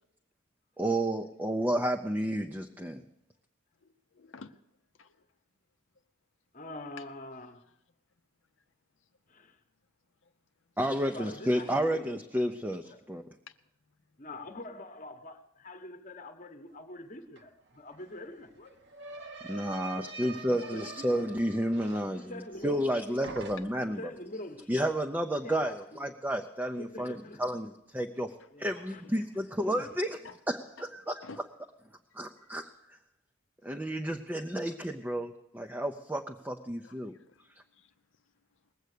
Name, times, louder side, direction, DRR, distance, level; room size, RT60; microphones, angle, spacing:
voice 1, 0.8-3.0 10.8-13.2 19.5-22.3 22.6-24.0 24.7-28.3 28.6-30.2 30.5-31.2 32.1-32.7 33.6-37.1, right 1 dB, 10° right, 0.5 m, -31 dB
voice 2, 3.8-4.5 5.0-5.2 13.5-13.6 28.4-28.9 30.2-30.4 30.8-30.9 31.2-31.4 33.9-34.0 36.8-37.4 37.7-37.9, left 4 dB, 65° left, 0.6 m, -51 dB
voice 3, 6.5-7.6 9.3-9.6 11.0-12.2 12.9-13.0 14.2-18.8 20.6-21.5 22.1-23.2 23.8-24.7 25.4-26.0 26.7-27.4 28.5-29.0 29.6-30.0, left 2 dB, 40° left, 1.1 m, -45 dB
sound 1, 17.4-17.5 17.7-22.9 23.2-24.0, right 3 dB, 55° right, 1.0 m, -45 dB
20.5 x 8.0 x 6.6 m
head